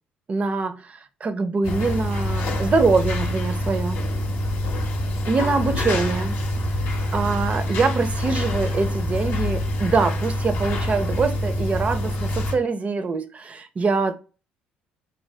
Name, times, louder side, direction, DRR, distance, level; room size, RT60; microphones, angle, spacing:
voice 1, 0.3-0.8 1.2-4.0 5.3-6.4 7.1-14.1, right 4 dB, 35° right, 0.5 m, -24 dB
sound 1, 1.6-12.5, left 1 dB, 60° left, 0.7 m, -25 dB
2.7 x 2.0 x 3.2 m
supercardioid pair, 65°, 4 cm